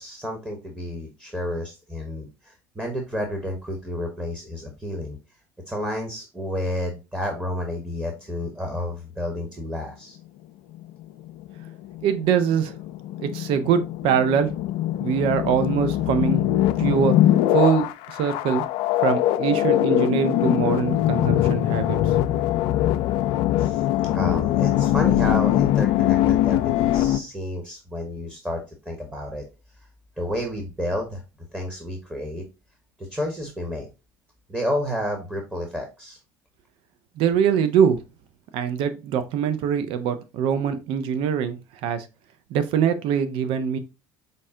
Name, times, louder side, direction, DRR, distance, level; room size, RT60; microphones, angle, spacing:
voice 1, 0.0-5.2 5.7-10.2 23.6-23.9 24.1-29.4 30.2-31.2 31.5-32.4 33.0-33.9 34.5-36.2, left 1 dB, 10° right, 2 dB, 1.1 m, -30 dB
sound 1, 10.7-27.2, left 13 dB, 65° left, 0.4 m, -22 dB
voice 2, 12.0-12.7 13.2-14.5 15.0-16.4 16.8-17.2 17.5-18.6 19.0-22.4 37.2-38.0 38.5-42.1 42.5-43.8, right 8 dB, 65° right, 11 dB, 0.6 m, -23 dB
5.3 x 2.2 x 3.6 m, 0.29 s
hypercardioid pair, 80°, 10 cm